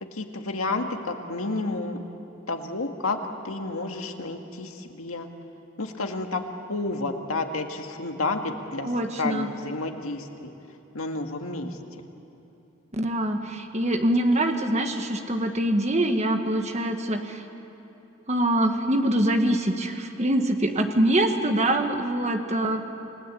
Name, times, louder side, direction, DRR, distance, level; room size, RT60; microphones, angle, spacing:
voice 1, 0.1-2.0 2.5-3.2 3.4-5.3 5.8-6.4 6.7-8.9 9.2-10.5 10.9-11.8, left 2 dB, 90° left, 4 dB, 2.0 m, -30 dB
voice 2, 8.8-9.5 12.9-17.4 18.3-22.8, right 1 dB, 30° right, 5 dB, 1.6 m, -24 dB
29.0 x 19.0 x 8.5 m, 2.9 s
head